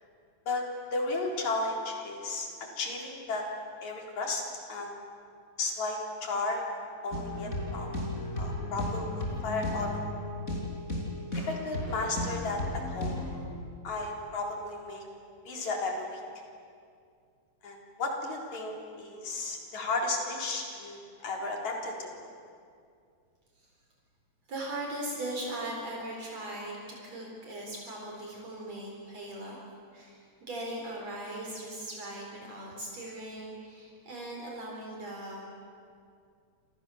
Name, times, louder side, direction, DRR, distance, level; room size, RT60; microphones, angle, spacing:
voice 1, 0.9-2.5 2.8-3.4 3.8-4.4 4.7-4.9 5.6-7.9 8.4-10.0 11.4-13.2 13.8-15.0 15.5-16.2 17.6-22.1, left 3 dB, 70° left, 0 dB, 5.2 m, -34 dB
sound 1, 7.1-13.4, left 1 dB, 25° left, 5.9 m, -35 dB
voice 2, 24.5-29.6 29.9-35.5, right 1 dB, 60° right, -2 dB, 5.4 m, -39 dB
29.0 x 27.5 x 7.2 m, 2.3 s
omnidirectional pair, 3.3 m